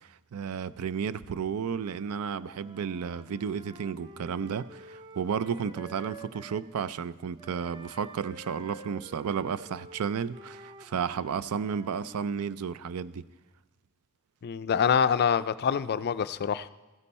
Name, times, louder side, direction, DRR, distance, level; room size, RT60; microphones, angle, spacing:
voice 1, 0.0-13.2, right 6 dB, 85° right, 0.4 m, -33 dB
Wind instrument woodwind instrument, 1.7-6.7 7.4-12.4, right 2 dB, 20° right, 0.6 m, -49 dB
voice 2, 14.4-16.7, left 7 dB, 45° left, 0.4 m, -25 dB
15.0 x 9.8 x 4.2 m
head